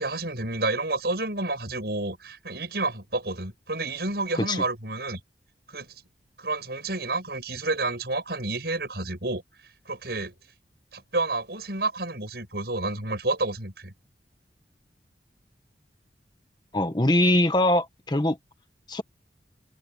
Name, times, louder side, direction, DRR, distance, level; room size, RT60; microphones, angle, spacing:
voice 1, 0.0-5.2 5.7-5.9 6.4-9.4 9.9-10.3 10.9-13.9, right 2 dB, 65° right, 7.3 m, -30 dB
voice 2, 16.7-18.4 18.9-19.0, left 1 dB, 25° left, 1.3 m, -22 dB
head